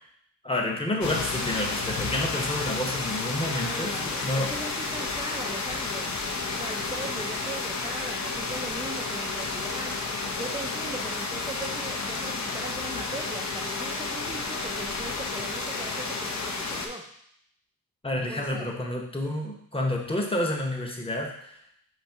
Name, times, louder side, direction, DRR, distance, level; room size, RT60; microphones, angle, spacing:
voice 1, 0.4-4.5 18.0-21.5, left 1 dB, 15° left, 0 dB, 0.8 m, -29 dB
sound 1, 1.0-16.9, left 3 dB, 55° left, 0.6 m, -31 dB
voice 2, 3.6-6.2 6.5-17.1 18.1-18.7, right 2 dB, 15° right, 1 dB, 0.3 m, -39 dB
4.1 x 2.8 x 4.5 m, 0.69 s
wide cardioid pair, 110°, 35 cm